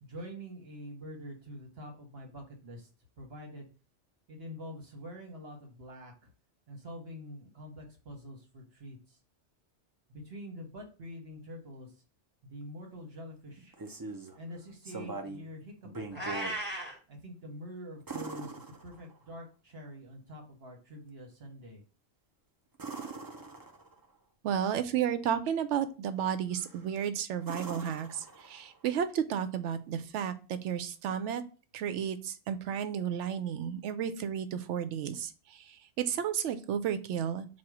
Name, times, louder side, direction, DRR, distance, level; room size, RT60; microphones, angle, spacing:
voice 1, 0.0-2.9 3.2-3.7 4.3-6.3 6.7-9.2 10.1-11.9 12.4-13.7 14.3-16.3 17.1-21.8, equal, 60° right, 2 dB, 1.3 m, -46 dB
sound 1, 13.5-14.4 14.8-15.5 15.8-16.6 18.1-19.3 22.7-24.0 26.5-26.9 27.4-28.8 30.9-31.0, right 3 dB, 35° right, 0.3 m, -42 dB
Meow, 16.1-17.0, right 1 dB, 10° right, 1.1 m, -36 dB
voice 2, 24.4-31.4 31.7-37.5, right 8 dB, 80° right, 11 dB, 0.9 m, -32 dB
4.3 x 2.3 x 4.7 m, 0.35 s
omnidirectional pair, 1.2 m